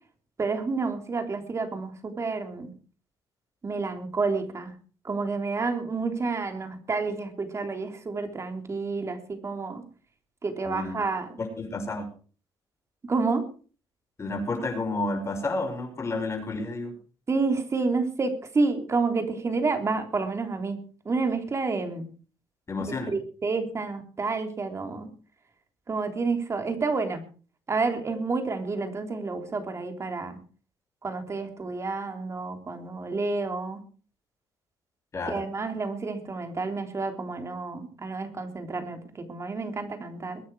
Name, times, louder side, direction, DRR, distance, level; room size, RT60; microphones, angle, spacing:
voice 1, 0.4-2.7 3.6-4.7 5.0-9.8 10.4-11.4 13.1-13.5 17.3-22.0 23.1-25.1 25.9-27.2 27.7-30.4 31.0-33.8 35.3-40.4, right 4 dB, 30° right, 6 dB, 3.4 m, -29 dB
voice 2, 10.6-11.0 11.4-12.1 14.2-16.9 22.7-23.1 35.1-35.4, left 2 dB, 30° left, 3 dB, 6.7 m, -31 dB
22.5 x 9.5 x 4.9 m, 0.39 s
cardioid pair, 105°, 9 cm